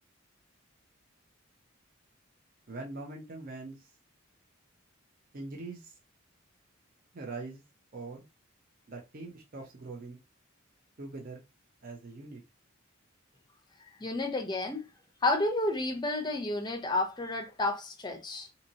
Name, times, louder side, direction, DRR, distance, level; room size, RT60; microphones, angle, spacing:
voice 1, 2.7-3.9 5.3-5.9 7.1-7.6 7.9-8.3 8.9-10.2 11.0-11.4 11.8-12.4, right 3 dB, 45° right, 0.6 m, -42 dB
voice 2, 14.0-14.9 15.2-18.5, left 2 dB, 20° left, 0.5 m, -31 dB
2.7 x 2.7 x 2.7 m
head